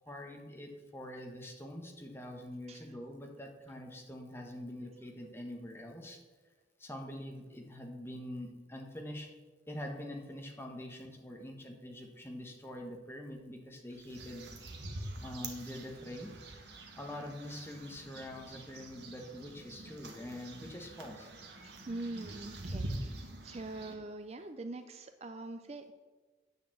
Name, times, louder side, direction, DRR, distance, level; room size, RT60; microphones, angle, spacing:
voice 1, 0.0-6.2 6.8-9.3 9.7-14.4 15.2-16.3 17.0-21.3, left 1 dB, 10° left, 2 dB, 1.2 m, -44 dB
sound 1, 14.0-23.9, right 2 dB, 65° right, 1.5 m, -45 dB
voice 2, 21.6-25.9, right 2 dB, 35° right, 9 dB, 0.4 m, -43 dB
9.2 x 6.6 x 7.7 m, 1.3 s
head